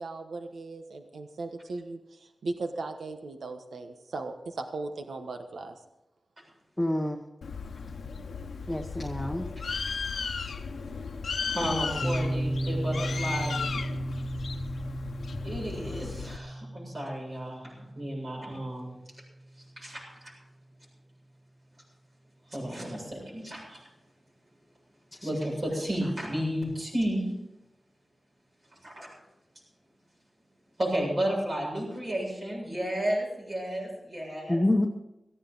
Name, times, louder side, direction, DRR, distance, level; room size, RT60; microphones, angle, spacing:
voice 1, 0.0-5.7, right 3 dB, 85° right, 6 dB, 1.2 m, -37 dB
voice 2, 6.8-7.3 8.7-9.5 25.2-25.3 34.5-34.9, left 1 dB, 10° left, 1 dB, 1.1 m, -27 dB
Bird, 7.4-16.4, left 5 dB, 85° left, 0.9 m, -35 dB
voice 3, 11.5-13.6 15.4-18.9 19.8-20.3 22.5-23.8 25.2-27.3 28.7-29.1 30.8-34.6, equal, 45° right, -5 dB, 7.5 m, -32 dB
Piano, 12.0-19.5, right 1 dB, 25° right, 0.7 m, -35 dB
17.5 x 15.0 x 4.0 m, 0.91 s
wide cardioid pair, 120°, 0 cm